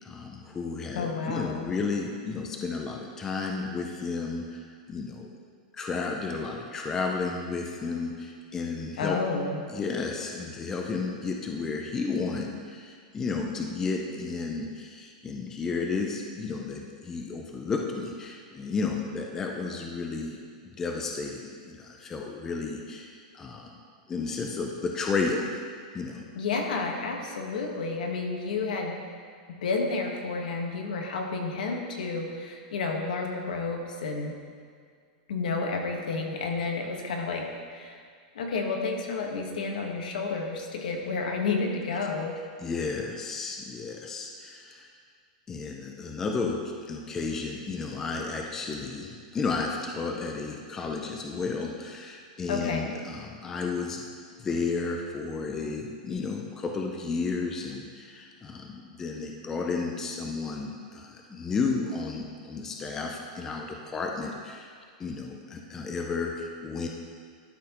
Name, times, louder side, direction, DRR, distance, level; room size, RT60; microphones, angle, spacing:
voice 1, 0.0-4.6 4.9-5.3 5.7-9.2 9.7-20.4 20.6-23.7 24.1-25.5 25.9-26.2 42.6-44.9 45.5-46.6 46.9-54.1 54.4-64.7 65.0-66.9, left 4 dB, 10° left, 1 dB, 0.4 m, -32 dB
voice 2, 0.9-1.7 9.0-9.6 26.3-29.0 29.5-34.4 35.3-38.0 38.3-42.4 52.5-52.9, left 4 dB, 80° left, 2 dB, 1.2 m, -31 dB
12.0 x 5.7 x 2.9 m, 2.1 s
supercardioid pair, 180°, 4 cm